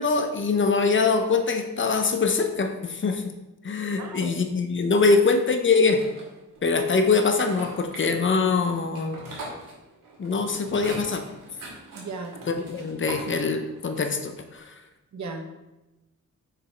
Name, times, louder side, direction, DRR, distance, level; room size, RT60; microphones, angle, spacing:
voice 1, 0.0-3.2 3.6-6.0 6.6-9.2 10.2-11.2 12.5-14.7, left 4 dB, 35° left, 6 dB, 0.6 m, -23 dB
voice 2, 4.0-4.3 5.1-5.2 11.9-12.4 15.1-15.6, right 3 dB, 60° right, 4 dB, 1.0 m, -36 dB
sound 1, 5.7-6.6 7.2-14.3, right 1 dB, 90° right, 2.2 m, -41 dB
6.6 x 5.2 x 4.3 m, 1.0 s
wide cardioid pair, 165°, 32 cm